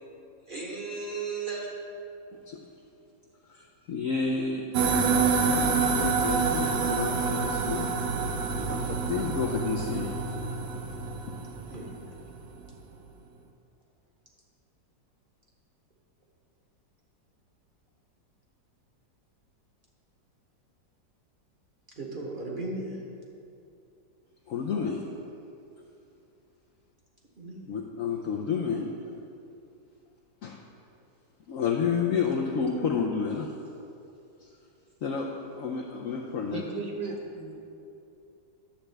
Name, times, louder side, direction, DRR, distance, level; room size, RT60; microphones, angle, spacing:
voice 1, 0.5-1.7 8.5-8.9 11.7-11.9 22.0-23.0 27.4-27.7, right 3 dB, 35° right, -3 dB, 0.9 m, -36 dB
voice 2, 3.5-7.9 8.7-10.2 24.5-25.0 27.7-28.9 30.4-30.6 31.5-33.5 34.4-34.5 35.0-36.6, left 5 dB, 70° left, 0 dB, 0.7 m, -30 dB
sound 1, 4.7-12.4, right 4 dB, 70° right, 1.2 m, -27 dB
voice 3, 36.5-37.6, right 3 dB, 55° right, -1 dB, 1.3 m, -36 dB
10.0 x 7.2 x 3.3 m, 2.7 s
omnidirectional pair, 1.9 m